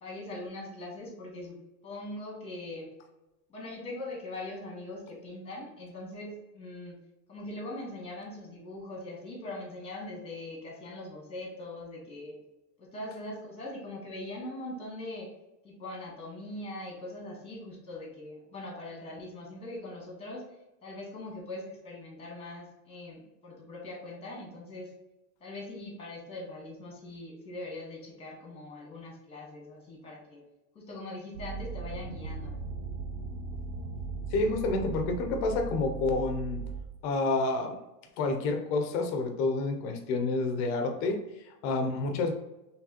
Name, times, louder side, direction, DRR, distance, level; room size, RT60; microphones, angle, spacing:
voice 1, 0.0-1.6 1.8-2.9 3.5-7.0 7.3-12.4 12.8-15.3 15.6-20.4 20.8-24.9 25.4-30.4 30.7-32.6, left 2 dB, 10° left, -1 dB, 1.4 m, -41 dB
sound 1, 31.3-36.8, right 4 dB, 65° right, 0.9 m, -38 dB
voice 2, 34.3-36.6 37.0-37.8 38.2-42.3, left 3 dB, 35° left, 5 dB, 0.6 m, -29 dB
4.6 x 3.3 x 2.8 m, 0.99 s
supercardioid pair, 145°, 48 cm